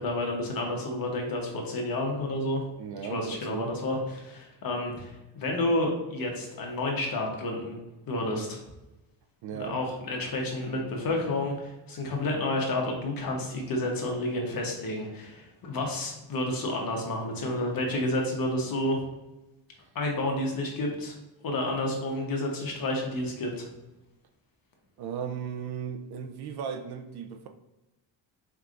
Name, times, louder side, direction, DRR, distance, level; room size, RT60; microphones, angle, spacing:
voice 1, 0.0-2.6 3.1-7.8 8.1-8.6 9.6-19.0 19.9-21.1 21.4-23.7, left 1 dB, 50° left, 0 dB, 1.1 m, -30 dB
voice 2, 2.8-3.7 9.4-9.8 25.0-27.5, right 7 dB, 60° right, 6 dB, 0.5 m, -36 dB
4.3 x 3.5 x 2.5 m, 0.97 s
cardioid pair, 120°, 46 cm